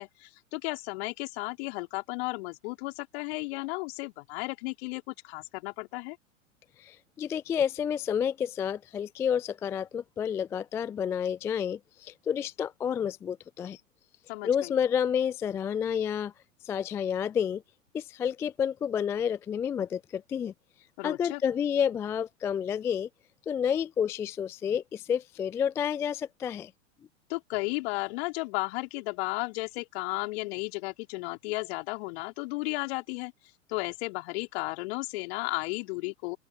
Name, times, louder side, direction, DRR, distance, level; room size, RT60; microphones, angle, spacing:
voice 1, 0.0-6.2 14.3-14.7 21.0-21.4 27.3-33.3 33.7-36.4, left 24 dB, 50° left, 4.9 m, -34 dB
voice 2, 6.8-13.8 14.4-16.3 16.6-17.6 17.9-20.5 21.0-23.1 23.5-26.7, left 8 dB, 5° left, 0.3 m, -30 dB
open air
figure-of-eight pair, 95°, 40 cm